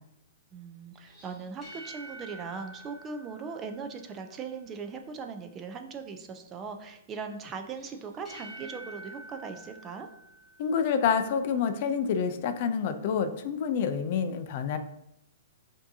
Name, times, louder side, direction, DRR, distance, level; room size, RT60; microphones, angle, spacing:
voice 1, 0.5-10.1, right 5 dB, 20° right, 5 dB, 0.4 m, -39 dB
sound 1, 0.9-4.5 7.7-11.2, right 1 dB, ahead, 1.4 m, -48 dB
voice 2, 10.6-14.8, left 6 dB, 45° left, 8 dB, 0.4 m, -28 dB
7.0 x 2.7 x 2.7 m, 0.77 s
hypercardioid pair, 155°, 0 cm